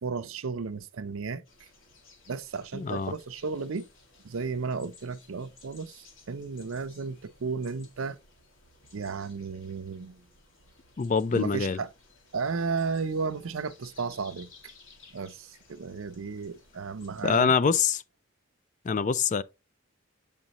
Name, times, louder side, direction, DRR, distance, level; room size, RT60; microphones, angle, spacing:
voice 1, 0.0-1.4 2.3-3.9 4.2-8.2 8.9-10.2 11.3-11.9 12.3-14.5 15.1-17.5, right 4 dB, 75° right, 0.5 m, -34 dB
sound 1, 1.4-17.4, left 3 dB, 70° left, 2.1 m, -57 dB
voice 2, 2.7-3.1 11.0-11.8 17.2-18.0 18.8-19.4, left 5 dB, 35° left, 0.4 m, -25 dB
7.1 x 5.2 x 2.9 m
head